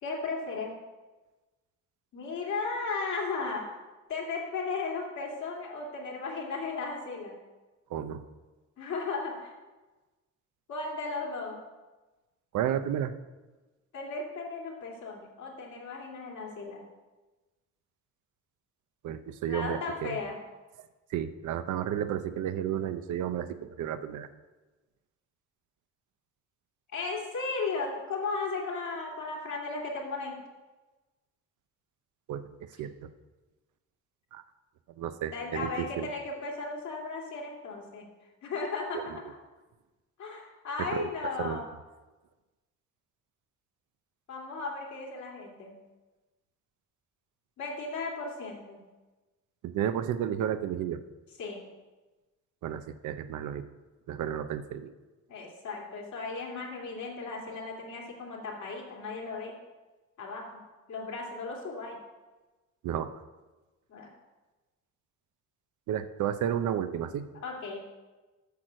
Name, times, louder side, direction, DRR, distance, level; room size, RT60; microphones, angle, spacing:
voice 1, 0.0-0.7 2.1-3.7 4.1-7.3 8.8-9.5 10.7-11.6 13.9-16.8 19.5-20.4 26.9-30.4 35.3-38.1 38.4-39.4 40.2-41.6 44.3-45.8 47.6-48.8 51.4-51.7 55.3-59.5 60.2-62.0 63.9-64.1 67.4-67.8, left 4 dB, 70° left, -2 dB, 2.6 m, -35 dB
voice 2, 7.9-8.2 12.5-13.1 19.0-20.2 21.1-24.3 32.3-32.4 32.8-33.1 34.3-34.4 35.0-36.1 38.9-39.1 40.8-41.1 41.4-41.6 49.6-51.0 52.6-53.6 54.1-54.9 62.8-63.1 65.9-67.2, right 10 dB, 75° right, 10 dB, 0.7 m, -32 dB
8.4 x 6.3 x 6.3 m, 1.2 s
cardioid pair, 90°, 30 cm